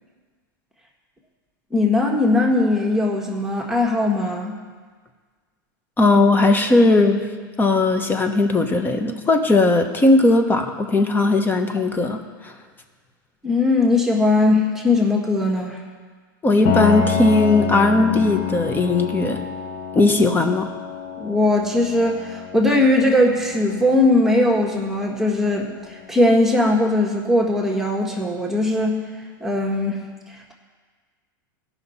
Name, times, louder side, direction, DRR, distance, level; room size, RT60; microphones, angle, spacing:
voice 1, 1.7-4.6 13.4-15.8 21.2-29.0 29.4-30.0, left 2 dB, 5° right, -2 dB, 1.6 m, -19 dB
voice 2, 6.0-7.3 7.6-12.5 16.4-19.4 19.9-20.7, left 2 dB, 15° left, 6 dB, 1.1 m, -18 dB
Piano, 16.6-26.2, left 9 dB, 50° left, 1.0 m, -29 dB
17.0 x 5.9 x 4.2 m, 1.5 s
hypercardioid pair, 105°, 12 cm